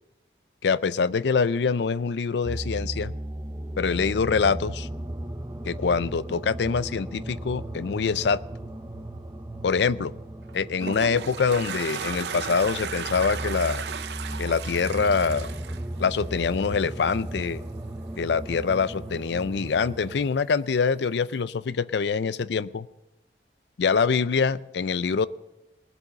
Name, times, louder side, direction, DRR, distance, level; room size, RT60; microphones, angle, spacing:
voice 1, 0.6-3.1 3.8-4.9 5.7-8.4 9.6-10.1 10.5-13.8 14.4-15.5 16.0-17.6 18.2-22.9 23.8-25.3, left 5 dB, 80° left, 17 dB, 0.4 m, -25 dB
sound 1, 2.4-20.3, right 1 dB, 15° right, 0.8 m, -36 dB
Toilet flush, 10.4-16.8, right 6 dB, 75° right, 0.6 m, -35 dB
19.5 x 7.8 x 5.6 m, 0.96 s
head